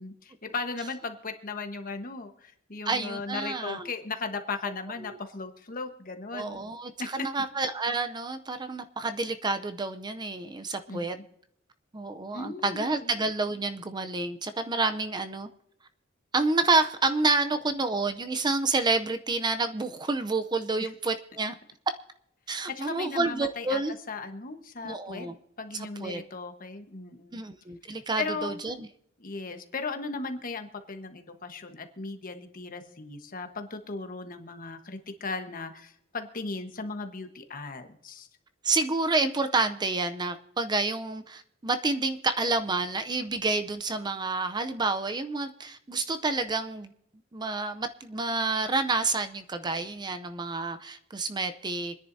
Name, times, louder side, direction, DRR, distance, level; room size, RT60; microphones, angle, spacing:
voice 1, 0.0-6.6 7.0-7.3 10.9-11.2 12.3-13.1 20.8-20.9 22.7-23.8 24.1-25.3 25.6-27.4 28.2-28.6 29.2-38.3, left 4 dB, 45° left, 6 dB, 1.3 m, -37 dB
voice 2, 2.9-3.9 5.0-5.2 6.3-11.2 11.9-15.5 16.3-21.5 22.5-23.9 24.8-25.4 25.7-26.2 27.3-28.9 38.6-46.9 47.3-51.9, right 3 dB, 20° right, 9 dB, 0.6 m, -29 dB
26.5 x 10.5 x 2.7 m, 0.73 s
head